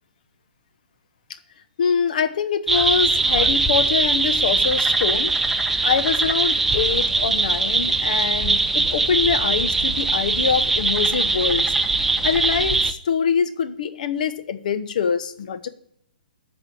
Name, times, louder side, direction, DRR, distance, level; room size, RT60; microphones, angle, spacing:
voice 1, 1.8-5.3 5.8-11.7 12.2-15.7, left 7 dB, 60° left, 10 dB, 1.1 m, -24 dB
sound 1, 2.7-12.9, right 3 dB, 5° right, 0.7 m, -21 dB
12.5 x 4.3 x 8.3 m, 0.68 s
hypercardioid pair, 150°, 5 cm